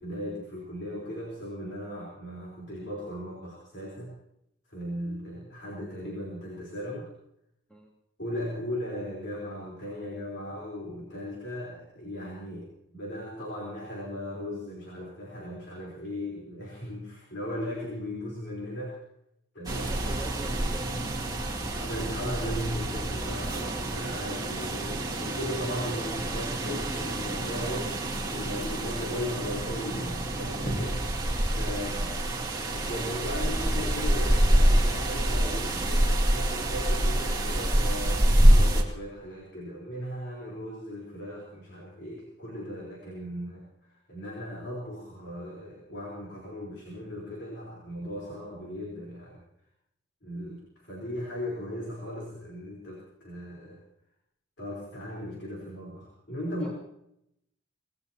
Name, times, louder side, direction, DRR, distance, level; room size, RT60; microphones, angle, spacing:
voice 1, 0.0-4.2 4.7-7.1 8.2-19.0 19.5-20.0 21.7-28.0 28.3-32.2 32.6-43.7 44.1-49.4 50.2-53.8 54.6-56.7, equal, 60° left, -3 dB, 4.0 m, -37 dB
voice 2, 19.7-21.3 56.6-56.7, right 1 dB, 5° left, -2 dB, 2.1 m, -44 dB
sound 1, 19.7-38.8, right 1 dB, 20° right, 2.3 m, -26 dB
25.0 x 19.0 x 2.9 m, 0.80 s
head